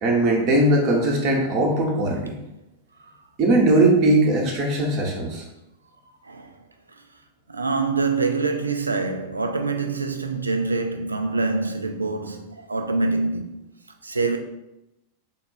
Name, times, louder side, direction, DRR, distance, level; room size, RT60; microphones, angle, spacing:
voice 1, 0.0-2.4 3.4-5.4, right 1 dB, 35° right, 0.8 m, -19 dB
voice 2, 7.5-13.6 14.0-14.4, right 3 dB, 80° right, 0.4 m, -25 dB
3.8 x 2.4 x 3.8 m
figure-of-eight pair, 90°, 0 cm